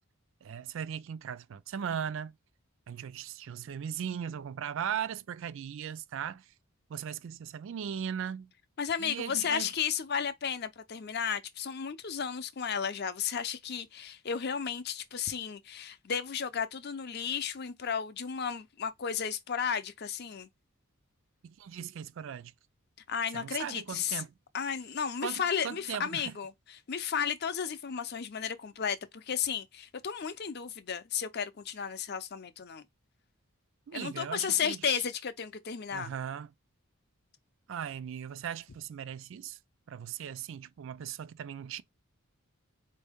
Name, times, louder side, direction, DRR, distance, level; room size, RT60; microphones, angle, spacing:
voice 1, 0.4-2.3 2.9-6.4 6.9-8.5 9.0-9.7 21.4-22.5 23.3-24.3 25.2-26.3 33.9-35.0 35.9-36.5 37.7-39.6 39.9-41.8, right 8 dB, 60° right, 0.3 m, -38 dB
voice 2, 8.8-20.5 23.1-24.2 24.5-32.8 33.9-36.1, left 7 dB, 45° left, 0.5 m, -33 dB
4.3 x 2.7 x 3.4 m
head